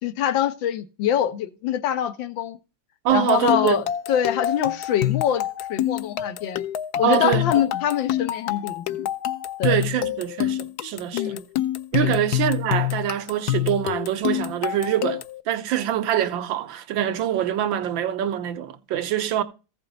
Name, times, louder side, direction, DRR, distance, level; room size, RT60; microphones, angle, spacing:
voice 1, 0.0-2.6 3.1-6.6 7.0-9.1 9.6-9.8 11.1-11.4 12.0-12.2, left 10 dB, 90° left, 1.7 m, -24 dB
voice 2, 3.0-3.8 7.0-7.5 9.6-11.3 11.9-19.4, right 11 dB, 85° right, 1.6 m, -24 dB
sound 1, 3.1-15.4, left 13 dB, 70° left, 1.0 m, -27 dB
14.5 x 5.6 x 3.9 m
omnidirectional pair, 2.0 m